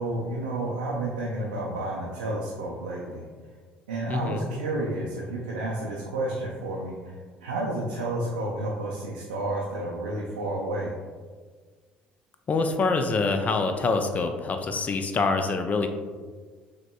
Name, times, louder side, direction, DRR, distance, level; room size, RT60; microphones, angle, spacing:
voice 1, 0.0-3.2 3.9-7.1 7.4-11.0, right 2 dB, 75° right, -4 dB, 0.4 m, -31 dB
voice 2, 4.1-4.5 12.5-15.9, left 3 dB, 30° left, 6 dB, 0.4 m, -25 dB
6.0 x 2.1 x 2.2 m, 1.5 s
figure-of-eight pair, 55°, 5 cm